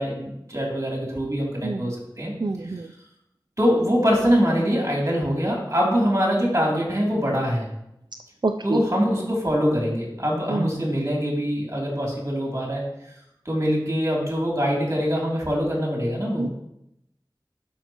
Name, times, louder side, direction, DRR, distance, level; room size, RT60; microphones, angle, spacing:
voice 1, 0.0-2.3 3.6-7.7 8.6-12.8 13.4-16.5, equal, 35° right, -3 dB, 3.0 m, -23 dB
voice 2, 1.6-1.9 2.4-2.9 8.4-8.8 10.5-10.7 16.4-16.5, right 3 dB, 60° right, 6 dB, 0.4 m, -26 dB
12.0 x 5.5 x 3.0 m, 0.81 s
wide cardioid pair, 40°, 8 cm